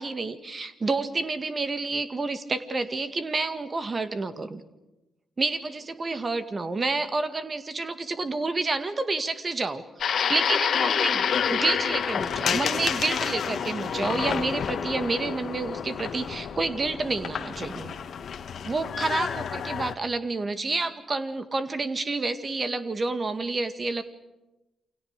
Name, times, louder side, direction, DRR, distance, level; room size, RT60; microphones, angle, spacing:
voice 1, 0.0-4.6 5.4-17.9 18.7-24.0, right 3 dB, 35° right, 10 dB, 2.0 m, -29 dB
sound 1, 10.0-19.9, left 7 dB, 60° left, 1.7 m, -28 dB
29.0 x 24.5 x 6.6 m, 0.99 s
hypercardioid pair, 45°, 0 cm